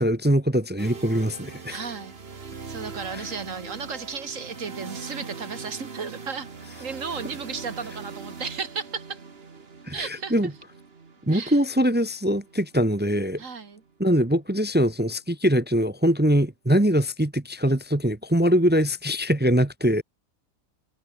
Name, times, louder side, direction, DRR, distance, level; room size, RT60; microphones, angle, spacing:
voice 1, 0.0-1.8 3.1-3.2 9.9-10.5 11.3-13.4 14.0-20.0, equal, 15° right, 0.4 m, -22 dB
sound 1, 0.8-14.6, right 4 dB, 45° right, 1.9 m, -42 dB
voice 2, 1.7-6.5 6.8-9.2 9.9-10.3 11.3-11.6 13.4-13.8, right 5 dB, 60° right, 2.5 m, -34 dB
omnidirectional pair, 1.5 m